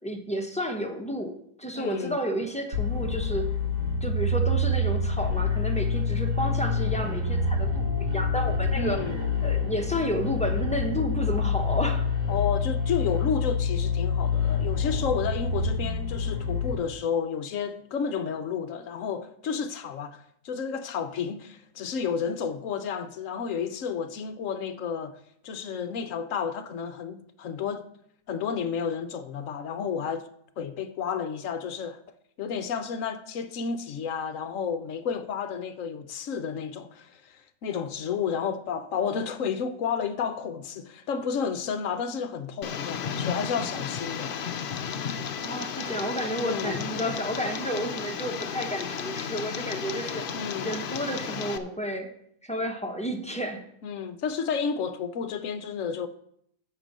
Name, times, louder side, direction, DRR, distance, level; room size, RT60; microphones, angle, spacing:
voice 1, 0.0-3.5 4.0-9.0 9.4-12.1 45.4-50.2 50.6-52.1 52.4-53.6, equal, 5° left, 0.5 m, -31 dB
voice 2, 1.7-2.2 8.7-9.2 12.3-25.2 25.4-27.9 28.3-30.3 30.6-32.0 32.4-44.4 46.4-46.8 50.3-50.7 53.8-56.1, left 6 dB, 60° left, 0.9 m, -31 dB
sound 1, 2.7-16.7, left 4 dB, 75° right, 2.7 m, -27 dB
Tick, 42.6-51.6, left 7 dB, 85° left, 0.4 m, -33 dB
10.5 x 4.5 x 7.3 m
omnidirectional pair, 1.7 m